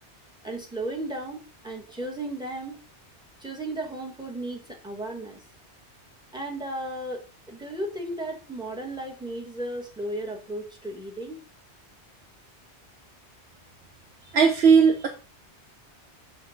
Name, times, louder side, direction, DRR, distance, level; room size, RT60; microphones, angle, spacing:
voice 1, 0.4-2.8 3.4-5.4 6.3-11.4, right 1 dB, 5° right, 1 dB, 1.4 m, -35 dB
voice 2, 14.3-15.1, right 6 dB, 65° right, 3 dB, 1.0 m, -17 dB
6.3 x 3.1 x 5.7 m, 0.35 s
omnidirectional pair, 1.2 m